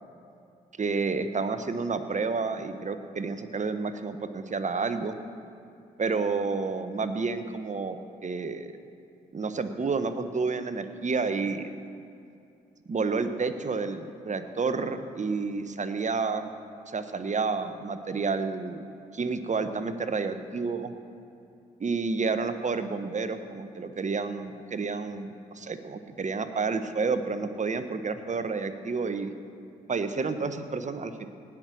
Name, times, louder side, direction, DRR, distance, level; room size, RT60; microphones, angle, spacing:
voice 1, 0.8-5.1 6.0-8.7 9.3-11.7 12.9-16.5 16.9-18.9 19.1-20.9 21.8-29.3 29.9-31.3, right 4 dB, 35° right, 9 dB, 1.0 m, -30 dB
18.0 x 6.1 x 6.3 m, 2.6 s
hypercardioid pair, 45°, 20 cm